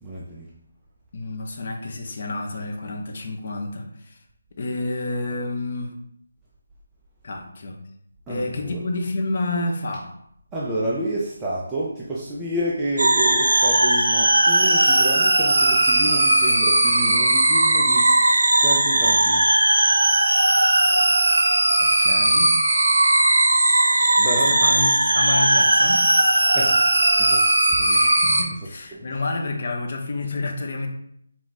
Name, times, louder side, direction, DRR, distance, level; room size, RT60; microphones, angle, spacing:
voice 1, 0.0-0.5 8.3-8.8 10.5-18.1 18.6-19.4 24.2-24.5 26.5-26.8 27.2-27.4 27.7-27.8 28.9-29.0, right 1 dB, 10° right, -7 dB, 0.3 m, -29 dB
voice 2, 1.1-4.2 4.6-5.9 7.2-7.8 8.3-10.1 21.8-23.0 24.2-26.1 27.6-30.9, left 2 dB, 40° left, 2 dB, 0.6 m, -29 dB
sound 1, 13.0-28.4, right 2 dB, 85° right, 0.7 m, -18 dB
4.5 x 2.0 x 4.0 m, 0.71 s
hypercardioid pair, 175°, 0 cm